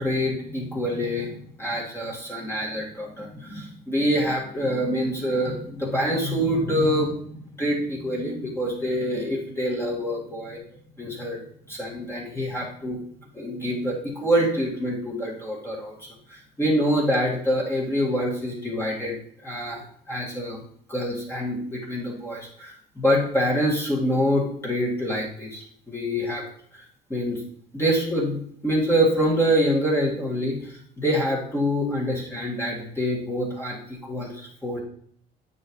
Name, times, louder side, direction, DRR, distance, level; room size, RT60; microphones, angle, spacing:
voice 1, 0.0-7.1 7.6-10.6 11.0-11.4 11.7-13.0 13.3-19.2 19.4-20.6 20.9-26.5 26.7-26.8 27.1-27.4 27.7-34.8, equal, 15° left, -4 dB, 2.0 m, -26 dB
8.9 x 6.3 x 3.2 m, 0.62 s
cardioid pair, 110°, 17 cm